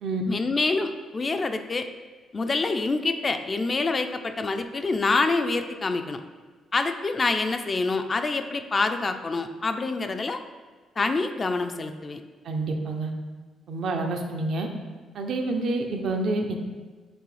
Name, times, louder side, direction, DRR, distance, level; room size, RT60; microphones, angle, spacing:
voice 1, 0.3-1.9 2.3-6.2 6.7-10.4 11.0-12.2, left 3 dB, 35° left, 8 dB, 0.3 m, -26 dB
voice 2, 12.4-13.1 13.7-14.7 15.1-16.6, right 2 dB, 70° right, 3 dB, 0.5 m, -28 dB
6.0 x 2.7 x 3.2 m, 1.4 s
cardioid pair, 90°, 0 cm